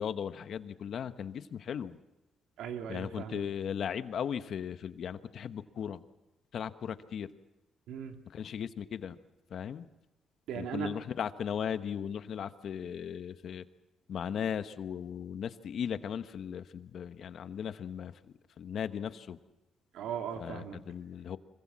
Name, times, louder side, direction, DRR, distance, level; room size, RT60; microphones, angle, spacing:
voice 1, 0.0-2.0 2.9-6.0 6.5-7.3 8.3-9.1 9.5-9.8 10.5-13.6 14.1-18.1 18.6-19.4 20.4-21.4, left 8 dB, 60° left, 11 dB, 1.1 m, -37 dB
voice 2, 2.6-3.4 7.9-8.2 10.5-10.9 19.9-20.8, right 8 dB, 85° right, 5 dB, 2.4 m, -38 dB
25.0 x 21.5 x 7.5 m, 1.0 s
cardioid pair, 90°, 0 cm